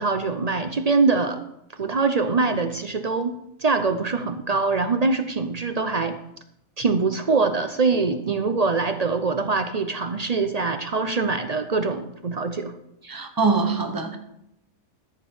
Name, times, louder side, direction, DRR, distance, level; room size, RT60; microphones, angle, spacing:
voice 1, 0.0-1.4 1.8-6.2 6.8-12.7, right 4 dB, 50° right, 8 dB, 0.4 m, -23 dB
voice 2, 13.1-14.2, right 4 dB, 20° right, 6 dB, 0.9 m, -23 dB
13.5 x 5.2 x 5.4 m, 0.79 s
omnidirectional pair, 1.4 m